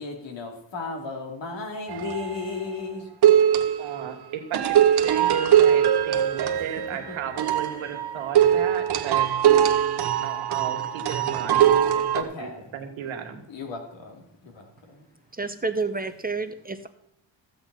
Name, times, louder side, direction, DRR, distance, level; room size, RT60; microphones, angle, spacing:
voice 1, 0.0-3.1 6.5-6.7 7.1-7.2 12.1-12.7 13.5-15.1, left 3 dB, 65° left, 2 dB, 3.0 m, -35 dB
sound 1, 1.9-2.4 3.2-4.1 4.5-12.2, right 10 dB, 55° right, 1.1 m, -21 dB
voice 2, 3.8-4.8 5.0-9.3 10.2-12.0 12.7-13.4, right 8 dB, 85° right, 5 dB, 1.9 m, -35 dB
voice 3, 15.3-16.9, right 3 dB, 20° right, 10 dB, 0.8 m, -29 dB
14.5 x 7.9 x 4.2 m, 0.76 s
cardioid pair, 90°, 46 cm